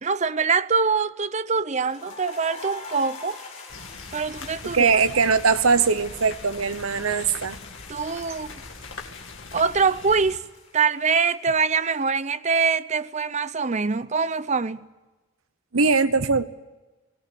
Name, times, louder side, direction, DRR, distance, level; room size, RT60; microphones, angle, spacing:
voice 1, 0.0-3.4 4.1-5.0 7.9-8.6 9.5-10.4 10.7-14.9, right 5 dB, 35° right, 0.6 m, -24 dB
sound 1, 1.9-11.7, left 4 dB, 35° left, 4.1 m, -44 dB
sound 2, 3.7-10.4, left 3 dB, 60° left, 2.2 m, -42 dB
voice 2, 4.6-7.6 15.7-16.4, right 5 dB, 80° right, 1.0 m, -21 dB
19.5 x 18.0 x 9.3 m
head